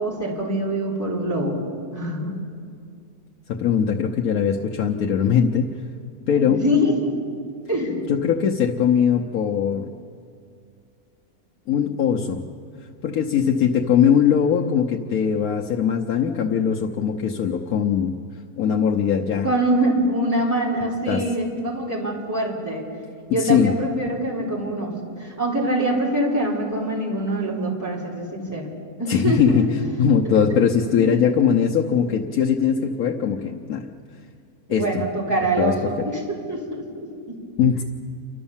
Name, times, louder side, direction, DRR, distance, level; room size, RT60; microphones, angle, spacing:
voice 1, 0.0-2.4 6.3-7.1 7.7-8.0 19.4-22.8 23.3-28.7 29.0-29.7 30.3-30.4 31.0-31.3 34.7-37.4, right 1 dB, 10° right, -5 dB, 4.0 m, -24 dB
voice 2, 3.5-5.7 6.3-6.6 8.1-9.9 11.7-12.4 13.0-18.1 18.6-19.5 21.1-21.2 23.4-23.7 29.1-33.9 34.7-34.9 35.6-35.7 37.6-37.8, left 7 dB, 80° left, 0 dB, 1.3 m, -20 dB
29.0 x 12.5 x 7.2 m, 2.3 s
omnidirectional pair, 1.5 m